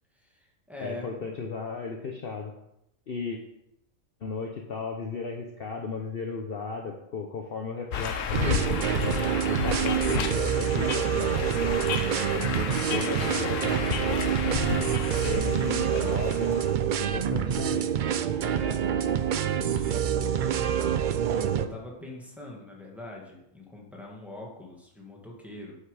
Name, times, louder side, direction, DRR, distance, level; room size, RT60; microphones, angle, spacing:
voice 1, 0.2-1.1 18.5-19.0 19.5-20.8 21.3-25.8, left 1 dB, ahead, -2 dB, 1.6 m, -43 dB
voice 2, 0.8-2.5 3.1-3.4 4.2-8.7 9.5-11.3 12.2-13.9 15.2-16.6 17.0-17.8, left 4 dB, 50° left, 2 dB, 0.9 m, -35 dB
sound 1, 7.9-16.7, left 6 dB, 70° left, 1.1 m, -32 dB
sound 2, 8.3-21.7, right 9 dB, 80° right, 0.4 m, -27 dB
8.3 x 5.7 x 4.8 m, 0.82 s
omnidirectional pair, 1.4 m